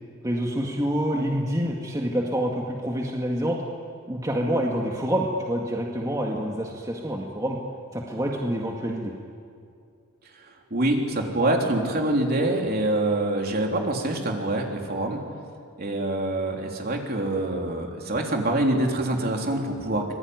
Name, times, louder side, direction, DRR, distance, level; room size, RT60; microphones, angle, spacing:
voice 1, 0.2-3.6 4.1-7.6 7.9-9.1, equal, 15° right, -1 dB, 2.0 m, -27 dB
voice 2, 10.4-15.2 15.8-20.1, right 1 dB, 45° right, 1 dB, 3.6 m, -25 dB
25.5 x 21.5 x 9.6 m, 2.4 s
head